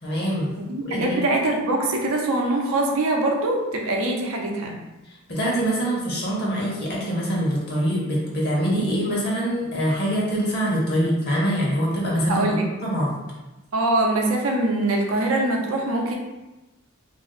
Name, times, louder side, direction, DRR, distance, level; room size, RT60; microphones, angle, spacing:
voice 1, 0.0-0.5 0.8-1.2 5.3-13.2, equal, 50° left, -5 dB, 0.9 m, -24 dB
voice 2, 0.6-4.8 12.3-12.6 13.7-16.1, right 2 dB, 75° right, 1 dB, 0.6 m, -23 dB
2.6 x 2.0 x 3.8 m, 1.1 s
head